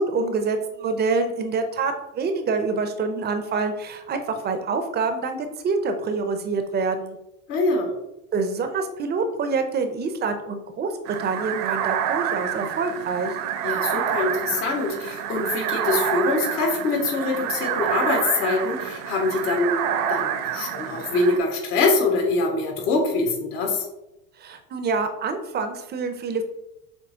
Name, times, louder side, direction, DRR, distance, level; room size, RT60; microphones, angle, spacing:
voice 1, 0.0-7.2 8.3-10.9 11.2-13.4 24.4-26.4, right 4 dB, 20° right, 7 dB, 0.5 m, -26 dB
voice 2, 7.5-7.9 13.6-19.8 20.1-23.9, left 3 dB, 75° left, 1 dB, 1.6 m, -24 dB
sound 1, 11.0-21.4, right 9 dB, 65° right, 0.7 m, -28 dB
6.9 x 2.8 x 2.8 m, 0.90 s
supercardioid pair, 105°, 48 cm